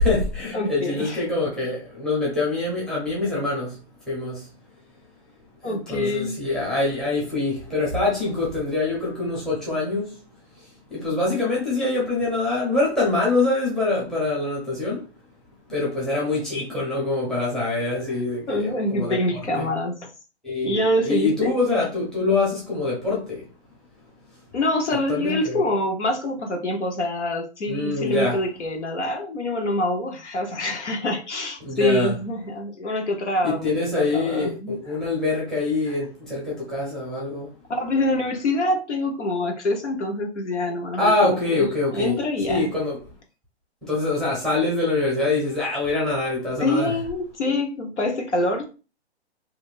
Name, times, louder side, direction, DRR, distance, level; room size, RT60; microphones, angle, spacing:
voice 1, 0.0-3.8 4.1-4.5 5.6-10.1 10.9-15.0 15.7-19.2 19.6-19.7 20.4-23.4 25.1-25.6 27.7-28.4 31.6-32.1 33.4-37.5 41.0-42.2 42.5-43.0 43.8-46.9, left 2 dB, ahead, 0.7 m, -24 dB
voice 2, 0.5-1.2 5.6-6.4 18.5-20.1 20.6-21.6 24.5-35.0 35.9-36.0 37.7-42.7 46.6-48.6, left 1 dB, 80° left, 1.0 m, -25 dB
3.0 x 2.6 x 2.5 m
hypercardioid pair, 135°, 34 cm